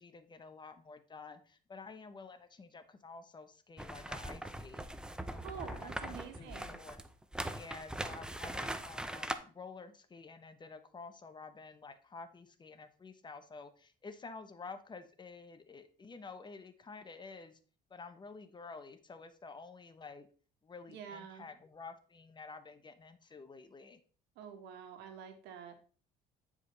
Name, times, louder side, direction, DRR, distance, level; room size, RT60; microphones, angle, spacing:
voice 1, 0.0-4.9 5.3-7.0 7.5-17.6 17.9-20.3 20.6-24.0, left 4 dB, 25° left, 10 dB, 0.9 m, -50 dB
sound 1, 3.8-9.4, right 1 dB, 5° right, 0.6 m, -41 dB
voice 2, 5.4-6.8 20.9-21.5 24.3-25.8, right 8 dB, 90° right, 6 dB, 1.5 m, -48 dB
9.3 x 5.0 x 4.0 m, 0.40 s
cardioid pair, 110°, 17 cm